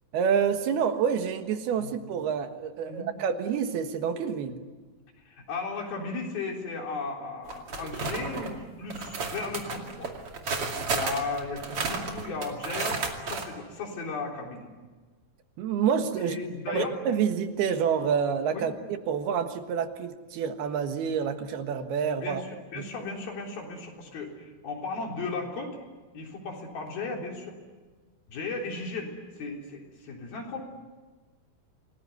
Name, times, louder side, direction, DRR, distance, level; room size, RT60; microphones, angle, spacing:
voice 1, 0.1-4.6 15.6-16.4 16.7-22.4 22.8-22.9, right 7 dB, 90° right, 7 dB, 3.5 m, -28 dB
voice 2, 5.3-10.1 10.9-13.0 13.3-14.7 16.2-17.0 18.5-18.7 22.2-25.8 26.1-27.6 28.3-30.6, left 3 dB, 70° left, 1 dB, 5.6 m, -35 dB
sound 1, 7.5-8.5 8.9-13.5, right 4 dB, 40° right, 3.0 m, -32 dB
27.5 x 20.0 x 9.5 m, 1.3 s
omnidirectional pair, 4.4 m